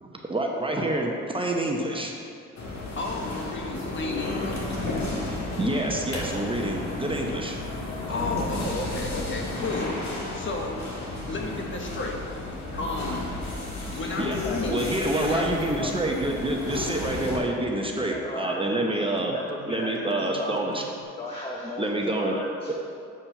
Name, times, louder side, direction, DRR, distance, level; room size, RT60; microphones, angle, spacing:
voice 1, 0.0-2.1 5.6-7.6 14.2-14.4 14.7-19.3 19.7-20.8 21.8-22.4 22.7-22.8, right 1 dB, 15° right, 0 dB, 0.8 m, -27 dB
sound 1, 2.6-17.4, left 2 dB, 65° left, 1.7 m, -33 dB
voice 2, 2.8-5.1 8.1-13.3 13.9-14.9 15.2-15.6, left 3 dB, 40° left, 1 dB, 1.1 m, -33 dB
sound 2, 11.1-12.3 12.7-13.3 14.2-17.2 17.6-18.3 19.2-21.0, right 7 dB, 65° right, 0.6 m, -48 dB
voice 3, 14.4-15.5 15.8-16.2 18.1-19.1 19.3-20.7 21.2-22.7, left 1 dB, 20° left, -1 dB, 0.7 m, -36 dB
7.4 x 4.3 x 5.5 m, 2.5 s
cardioid pair, 90°, 30 cm